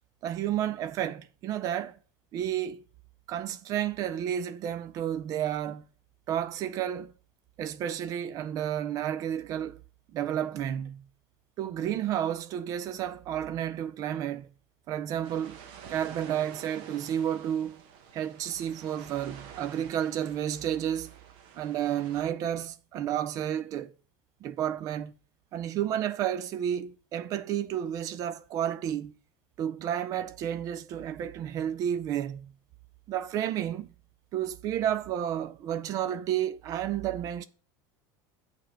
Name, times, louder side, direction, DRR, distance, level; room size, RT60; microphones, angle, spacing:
voice 1, 0.2-2.0 2.3-2.8 3.3-5.8 6.3-7.1 7.6-9.8 10.1-11.1 11.6-14.5 14.9-15.6 15.9-17.8 18.1-21.1 21.6-23.9 24.4-25.1 25.5-29.1 29.6-32.5 33.1-33.9 34.3-37.4, right 10 dB, 35° right, 0.4 m, -31 dB
sound 1, 15.2-22.2, right 7 dB, 55° right, 0.9 m, -49 dB
8.1 x 3.3 x 6.4 m
cardioid pair, 165°, 11 cm